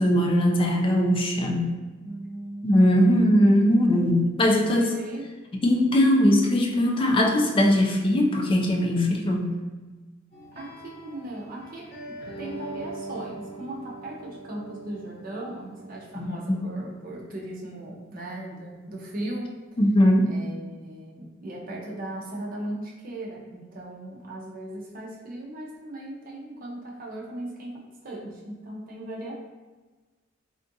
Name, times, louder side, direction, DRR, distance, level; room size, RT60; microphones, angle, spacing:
voice 1, 0.0-1.8 2.6-4.9 5.6-9.5 16.2-16.7 19.8-20.3, equal, 25° left, 1 dB, 0.3 m, -20 dB
voice 2, 2.0-3.2 4.4-5.3 10.5-11.9 12.4-19.5 20.2-29.3, right 1 dB, 45° right, -3 dB, 0.6 m, -37 dB
sound 1, 10.3-17.3, right 2 dB, 55° left, 1.0 m, -42 dB
3.5 x 2.4 x 2.6 m, 1.3 s
head